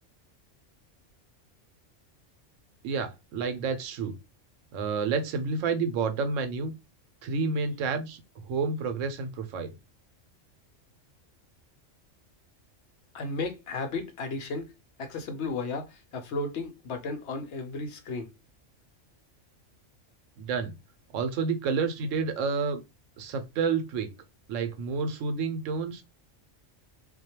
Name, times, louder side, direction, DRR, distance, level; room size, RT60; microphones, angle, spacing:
voice 1, 2.8-4.2 4.7-6.7 7.2-9.7 20.4-20.7 21.1-22.8 23.2-24.1 24.5-26.0, right 5 dB, 85° right, 0.9 m, -29 dB
voice 2, 13.1-14.7 15.0-18.3, left 3 dB, 70° left, 0.8 m, -34 dB
2.3 x 2.1 x 2.8 m
omnidirectional pair, 1.3 m